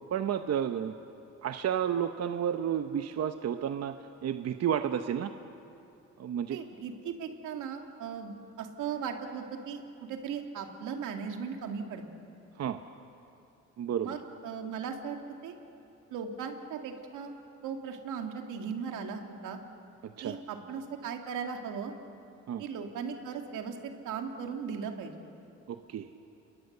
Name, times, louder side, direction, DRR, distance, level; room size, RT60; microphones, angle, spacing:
voice 1, 0.1-1.0 1.4-5.3 6.2-6.6 12.6-12.8 13.8-14.2 20.0-20.4 22.5-22.6 25.7-26.1, right 9 dB, 55° right, 8 dB, 0.9 m, -31 dB
voice 2, 6.5-12.0 14.0-15.2 15.4-15.5 16.1-17.3 17.6-19.6 20.2-21.9 22.6-25.1, right 6 dB, 85° right, 4 dB, 2.4 m, -38 dB
29.0 x 21.0 x 6.8 m, 2.8 s
cardioid pair, 90°, 30 cm